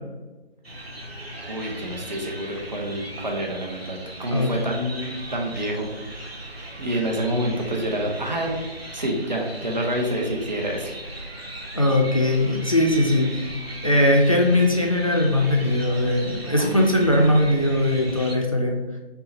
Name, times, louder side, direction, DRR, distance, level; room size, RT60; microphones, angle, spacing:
sound 1, 0.6-18.3, right 1 dB, 75° right, 1.3 m, -38 dB
voice 1, 1.5-5.9 6.8-8.5 8.9-10.9, right 1 dB, 45° right, 1 dB, 0.8 m, -27 dB
voice 2, 11.7-18.8, left 1 dB, 35° left, 0 dB, 0.5 m, -20 dB
5.6 x 2.1 x 4.0 m, 1.2 s
figure-of-eight pair, 155°, 30 cm